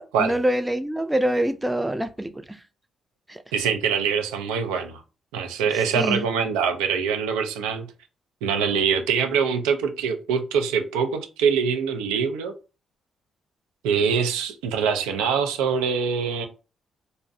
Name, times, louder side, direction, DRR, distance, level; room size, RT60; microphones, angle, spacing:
voice 1, 0.0-2.3 3.3-3.4 5.9-6.2, right 1 dB, 10° right, 0.4 m, -25 dB
voice 2, 3.5-5.0 5.3-7.9 8.4-12.5 13.8-16.5, right 6 dB, 85° right, 0.3 m, -24 dB
2.5 x 2.0 x 2.6 m
hypercardioid pair, 50°, 0 cm